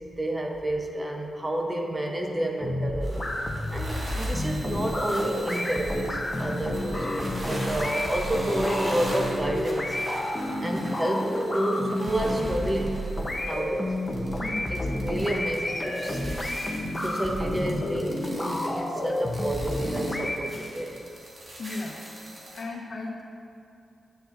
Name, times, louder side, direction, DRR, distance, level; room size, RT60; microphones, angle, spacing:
voice 1, 0.2-10.0 10.6-13.1 13.4-16.4 17.0-20.9 22.4-22.5, right 1 dB, 20° right, 1 dB, 0.8 m, -30 dB
sound 1, 2.6-20.4, left 1 dB, 15° left, 0.8 m, -30 dB
sound 2, 3.0-22.6, right 1 dB, 40° right, 1.7 m, -41 dB
voice 2, 14.4-14.7 21.6-22.0 22.3-23.2, left 3 dB, 60° left, -1 dB, 1.1 m, -36 dB
10.5 x 8.7 x 2.6 m, 2.6 s
wide cardioid pair, 110°, 0 cm